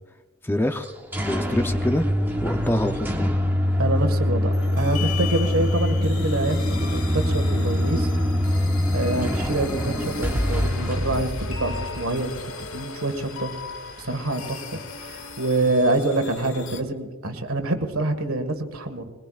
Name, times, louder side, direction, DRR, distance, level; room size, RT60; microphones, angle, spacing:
voice 1, 0.4-0.9 1.2-2.1 2.4-3.3, left 1 dB, 10° left, 6 dB, 0.6 m, -25 dB
sound 1, 0.8-12.5, left 1 dB, 10° right, 1.1 m, -24 dB
voice 2, 3.8-8.1 8.9-12.3 12.7-13.5 14.0-19.1, right 2 dB, 85° right, 6 dB, 1.7 m, -26 dB
sound 2, 4.5-16.8, left 5 dB, 80° left, 1.4 m, -37 dB
21.5 x 20.5 x 2.5 m, 1.4 s
head